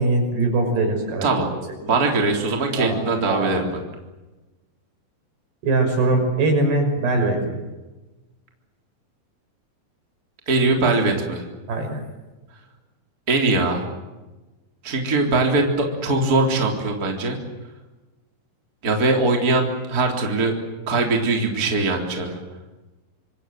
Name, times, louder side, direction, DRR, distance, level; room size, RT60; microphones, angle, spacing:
voice 1, 0.0-1.3 2.8-3.0 3.3-3.7 5.6-7.6 11.7-12.1, right 2 dB, 65° right, 4 dB, 7.9 m, -21 dB
voice 2, 1.8-3.7 10.5-11.4 13.3-13.8 14.8-17.4 18.8-20.5 20.9-22.4, right 3 dB, 20° right, 2 dB, 3.7 m, -21 dB
27.5 x 26.0 x 7.9 m, 1.1 s
omnidirectional pair, 4.9 m